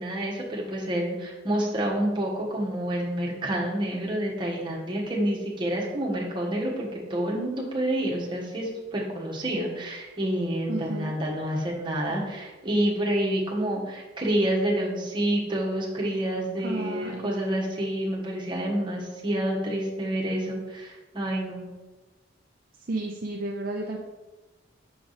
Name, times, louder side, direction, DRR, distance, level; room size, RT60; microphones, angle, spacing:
voice 1, 0.0-21.7, right 1 dB, 25° right, -4 dB, 1.3 m, -28 dB
voice 2, 10.7-11.1 16.6-17.2 22.9-24.0, right 2 dB, 50° right, 0 dB, 0.5 m, -32 dB
5.9 x 4.8 x 4.1 m, 1.2 s
head